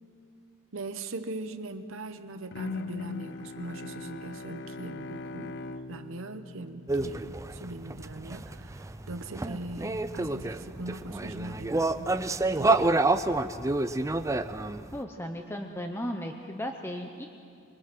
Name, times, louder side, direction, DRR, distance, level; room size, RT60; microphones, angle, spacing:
voice 1, 0.7-5.6 5.9-12.2 12.6-12.9, right 2 dB, 65° right, 8 dB, 0.9 m, -40 dB
Bowed string instrument, 2.5-7.6, left 3 dB, 55° left, 0.6 m, -40 dB
sound 1, 6.9-15.0, right 2 dB, 15° right, 0.5 m, -29 dB
voice 2, 14.9-17.3, equal, 10° left, 4 dB, 0.8 m, -35 dB
25.5 x 22.5 x 6.1 m, 2.4 s
head